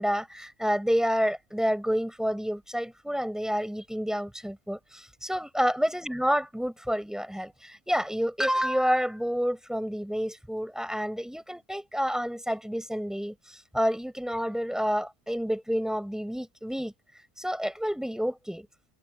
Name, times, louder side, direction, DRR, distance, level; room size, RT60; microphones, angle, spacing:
voice 1, 0.0-16.9 17.4-18.7, equal, ahead, 6.9 m, -29 dB
cardioid pair, 135°, 38 cm